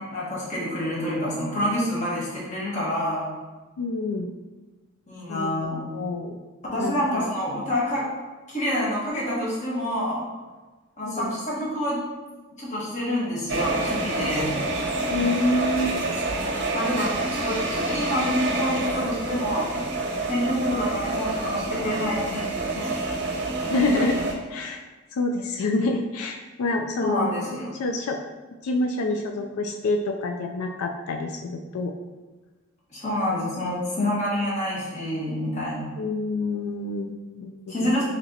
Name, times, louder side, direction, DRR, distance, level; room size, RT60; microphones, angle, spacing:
voice 1, 0.0-3.2 5.1-5.8 6.6-8.1 8.5-10.2 11.0-12.0 12.6-14.5 16.7-19.9 20.3-22.9 27.0-27.7 32.9-35.9 37.7-38.0, left 1 dB, 35° left, -6 dB, 1.3 m, -27 dB
voice 2, 3.8-4.3 5.3-5.5 5.9-6.4 6.8-7.2 11.0-11.3 15.1-15.9 23.7-24.2 24.5-24.8 25.1-27.3 27.8-28.2 28.6-31.9 36.0-37.5 37.8-38.0, left 2 dB, 90° left, 3 dB, 0.4 m, -27 dB
sound 1, 13.5-24.3, right 2 dB, 50° right, 0.6 m, -27 dB
5.8 x 2.9 x 2.7 m, 1.2 s
head